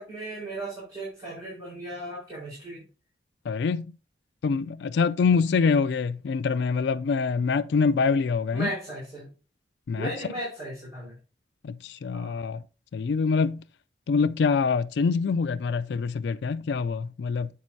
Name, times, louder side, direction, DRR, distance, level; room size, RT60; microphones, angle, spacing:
voice 1, 0.0-2.8 8.5-9.3 9.9-11.1 12.1-12.3, right 1 dB, 20° right, 4.5 m, -36 dB
voice 2, 3.5-3.9 4.4-8.7 9.9-10.1 11.6-12.6 12.9-13.6 14.1-17.5, left 5 dB, 75° left, 0.3 m, -25 dB
8.4 x 7.6 x 2.7 m
head